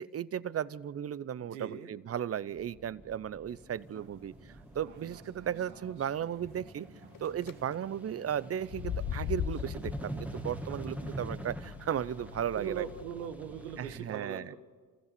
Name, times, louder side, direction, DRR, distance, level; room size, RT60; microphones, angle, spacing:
voice 1, 0.0-6.9 7.2-12.8 13.8-14.5, right 9 dB, 30° right, 20 dB, 0.6 m, -35 dB
voice 2, 1.4-1.9 12.5-14.6, right 8 dB, 85° right, 8 dB, 1.6 m, -39 dB
sound 1, 2.5-14.0, right 1 dB, 5° right, 1.8 m, -45 dB
sound 2, 3.5-11.5, right 4 dB, 50° right, 4.3 m, -57 dB
sound 3, 7.1-7.5 8.6-13.0, left 10 dB, 45° left, 0.9 m, -39 dB
29.0 x 14.5 x 6.8 m, 1.5 s
hypercardioid pair, 65°, 48 cm